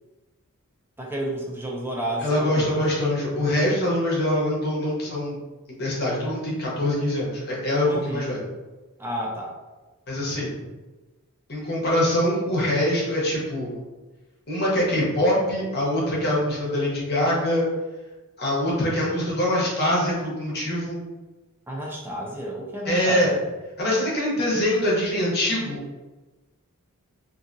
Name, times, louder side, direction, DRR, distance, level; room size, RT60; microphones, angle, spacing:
voice 1, 1.0-3.0 7.9-8.3 9.0-9.5 21.7-23.5, right 1 dB, 10° right, -2 dB, 0.4 m, -31 dB
voice 2, 2.2-5.4 5.8-8.5 10.1-10.7 11.5-13.7 14.5-17.7 18.4-21.0 22.8-23.3 23.8-25.8, left 1 dB, 45° left, -5 dB, 0.9 m, -24 dB
2.8 x 2.5 x 2.5 m, 1.2 s
head